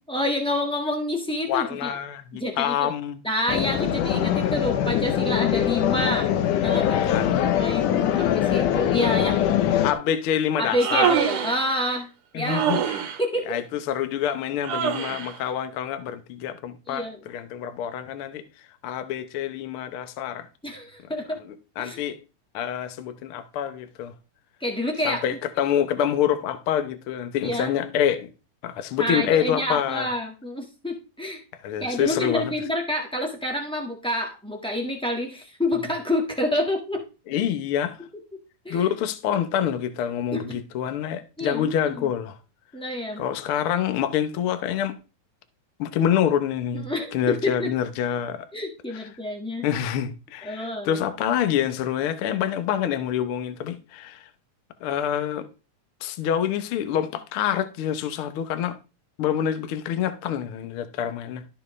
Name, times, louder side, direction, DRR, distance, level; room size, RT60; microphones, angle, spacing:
voice 1, 0.1-2.0 2.3-2.9 3.2-6.3 6.6-9.8 10.6-12.8 13.2-13.6 16.9-17.2 20.6-21.4 21.8-22.0 24.6-25.2 27.4-27.7 29.0-31.4 31.8-37.0 38.6-38.9 40.3-40.6 41.4-42.1 42.7-43.2 46.8-47.7 48.5-49.6 50.4-51.0, left 1 dB, 5° left, 0.3 m, -28 dB
voice 2, 1.5-3.2 7.1-7.5 9.8-11.2 12.3-13.0 13.5-18.4 18.8-20.5 21.5-22.2 22.5-24.1 25.0-28.3 28.6-30.1 31.6-32.5 37.3-38.0 38.7-42.4 43.2-44.9 45.8-48.5 48.9-49.0 49.6-54.3 54.8-55.5 56.0-58.8 59.2-61.4, left 9 dB, 65° left, 1.4 m, -26 dB
sound 1, 3.5-9.9, left 10 dB, 85° left, 2.4 m, -22 dB
Human voice, 10.6-11.6 12.5-13.2 14.6-15.3, right 8 dB, 85° right, 3.0 m, -25 dB
12.5 x 6.8 x 3.2 m
omnidirectional pair, 3.5 m